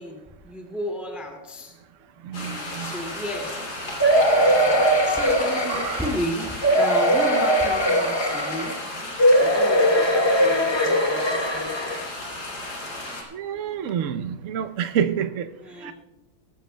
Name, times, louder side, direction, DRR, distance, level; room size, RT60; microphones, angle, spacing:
voice 1, 0.0-1.7 2.3-3.6 4.7-8.7 9.0-12.4 15.6-15.9, equal, ahead, 0 dB, 2.0 m, -34 dB
voice 2, 2.2-2.9 5.7-6.1 13.3-15.5 15.7-15.9, right 8 dB, 65° right, 7 dB, 0.7 m, -28 dB
sound 1, 2.3-13.2, left 1 dB, 65° left, 3.6 m, -34 dB
sound 2, 4.0-6.2 6.6-8.8 9.2-12.0 12.6-12.7 13.0-13.1, equal, 20° left, 0.6 m, -20 dB
21.0 x 14.5 x 2.3 m, 1.1 s
omnidirectional pair, 2.2 m